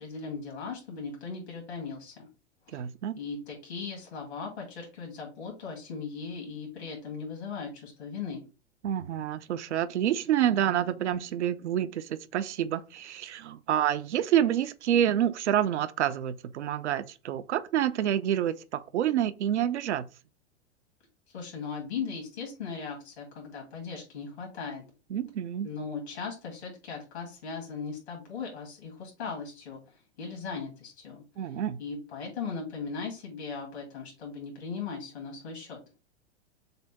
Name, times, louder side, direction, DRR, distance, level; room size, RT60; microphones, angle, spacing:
voice 1, 0.0-2.3 2.7-2.8 3.2-8.4 21.3-24.8 25.6-29.8 30.2-31.2 31.8-35.8, left 5 dB, 70° left, 2.4 m, -38 dB
voice 2, 2.7-3.2 8.8-20.1 25.1-25.7 31.4-31.8, right 10 dB, 80° right, 0.6 m, -28 dB
6.6 x 2.2 x 3.4 m
hypercardioid pair, 105°, 34 cm